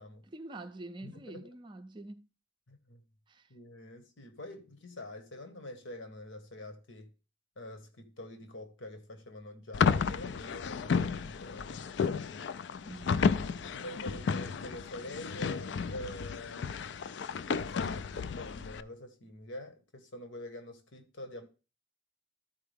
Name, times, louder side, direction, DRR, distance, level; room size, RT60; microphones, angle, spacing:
voice 1, 0.3-2.3 3.3-3.5 12.8-13.8 14.1-14.2, right 2 dB, 25° right, 0.4 m, -46 dB
voice 2, 1.0-1.5 2.7-3.0 3.5-7.1 7.6-11.8 13.7-16.7 17.4-21.5, left 1 dB, 75° left, 1.4 m, -46 dB
sound 1, 9.7-18.8, left 6 dB, 60° left, 0.4 m, -32 dB
13.0 x 4.7 x 3.5 m
head